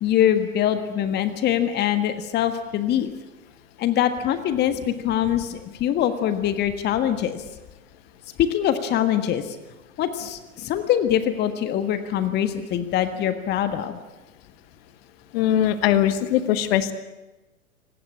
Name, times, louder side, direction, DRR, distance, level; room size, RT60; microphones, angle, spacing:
voice 1, 0.0-3.1 3.8-7.4 8.4-9.6 10.0-14.0, left 10 dB, 25° left, 10 dB, 1.5 m, -23 dB
voice 2, 15.3-16.9, left 11 dB, 45° left, 12 dB, 1.7 m, -21 dB
25.0 x 18.5 x 9.7 m, 1.1 s
figure-of-eight pair, 110°, 44 cm